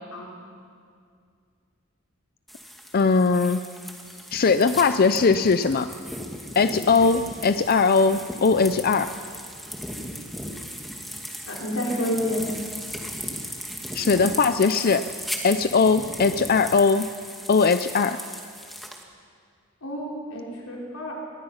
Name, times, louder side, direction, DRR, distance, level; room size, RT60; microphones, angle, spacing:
sound 1, 2.5-19.0, equal, ahead, 1.8 m, -37 dB
voice 1, 2.9-3.7 4.3-5.9 6.6-9.1 13.9-15.1 15.4-17.1 17.5-18.2, left 4 dB, 45° left, 11 dB, 0.5 m, -20 dB
voice 2, 11.5-12.4 19.8-21.2, equal, 90° left, -3 dB, 4.8 m, -29 dB
24.0 x 19.5 x 5.7 m, 2.3 s
head